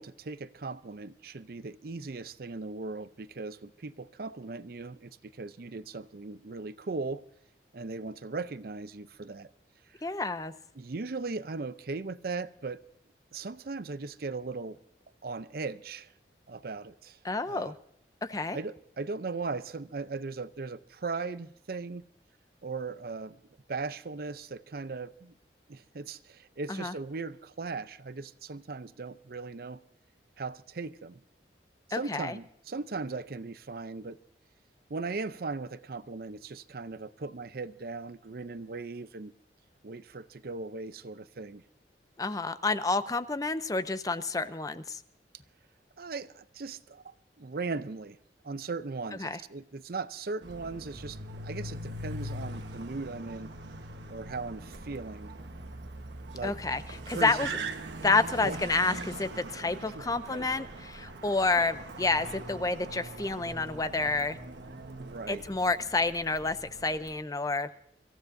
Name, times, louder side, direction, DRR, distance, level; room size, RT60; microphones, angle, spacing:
voice 1, 0.0-7.2 7.7-9.5 9.9-10.0 10.7-12.8 13.3-14.8 15.2-16.1 16.5-17.2 17.5-17.7 18.5-22.1 22.6-23.4 23.7-25.3 25.7-29.8 30.4-31.2 31.9-34.2 34.9-39.3 39.8-41.6 46.0-48.2 48.4-53.5 54.1-55.3 56.3-56.6 57.1-57.5 58.4-58.6 59.9-60.1 65.0-65.4, right 3 dB, 55° right, 13 dB, 0.6 m, -38 dB
voice 2, 10.0-10.5 17.2-17.7 18.2-18.6 26.7-26.9 31.9-32.4 42.2-45.0 49.2-49.4 56.4-56.8 57.1-57.5 58.0-64.4 65.3-67.7, left 3 dB, 20° left, 12 dB, 0.6 m, -29 dB
Car, 50.4-67.2, right 2 dB, 85° right, 1.2 m, -42 dB
25.0 x 15.5 x 2.6 m, 0.69 s
head